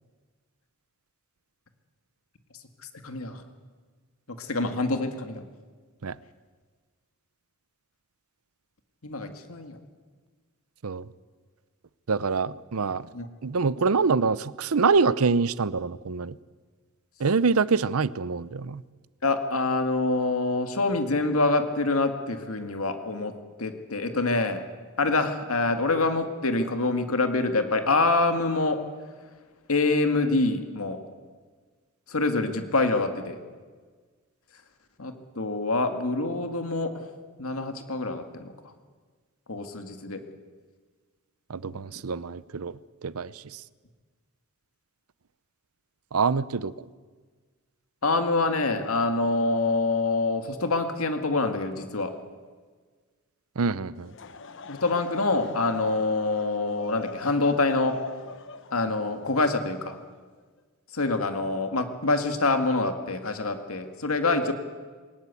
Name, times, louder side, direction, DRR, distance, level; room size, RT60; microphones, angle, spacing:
voice 1, 3.0-3.4 4.4-5.4 9.0-9.8 13.1-13.3 19.2-23.3 23.6-24.6 25.0-28.8 29.7-31.0 32.1-33.4 35.0-37.1 37.4-38.7 39.5-40.2 41.7-41.8 48.0-52.1 54.7-58.0 58.7-60.0 60.9-64.5, left 3 dB, 80° left, 7 dB, 2.0 m, -26 dB
voice 2, 12.1-13.1 13.4-16.4 17.2-18.8 41.5-43.6 46.1-46.7 53.6-54.1, right 4 dB, 85° right, 19 dB, 0.7 m, -25 dB
Laughter / Crowd, 54.0-60.4, left 4 dB, 60° left, 1.1 m, -42 dB
22.0 x 20.0 x 8.4 m, 1.5 s
head